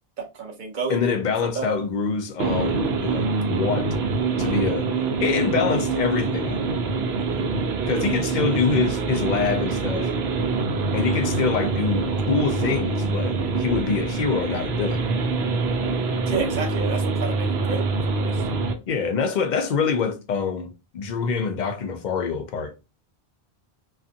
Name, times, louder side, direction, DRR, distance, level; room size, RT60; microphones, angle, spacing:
voice 1, 0.2-1.2 1.5-1.8 7.1-7.4 16.3-18.4, right 5 dB, 55° right, 0.7 m, -31 dB
voice 2, 0.9-3.9 4.4-4.9 5.2-6.6 7.9-10.1 10.9-15.0 18.9-22.7, left 5 dB, 55° left, 0.5 m, -25 dB
sound 1, 2.4-18.7, right 3 dB, 85° right, 0.8 m, -25 dB
2.4 x 2.4 x 2.6 m
omnidirectional pair, 1.0 m